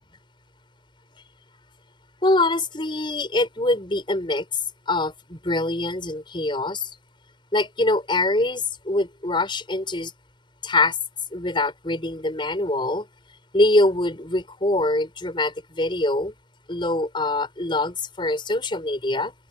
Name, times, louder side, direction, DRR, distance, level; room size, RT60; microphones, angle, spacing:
voice 1, 2.2-4.4 4.9-6.9 7.5-10.1 10.6-11.0 11.3-13.1 13.5-16.3 16.7-19.3, left 2 dB, 25° left, 5.9 m, -24 dB
open air
head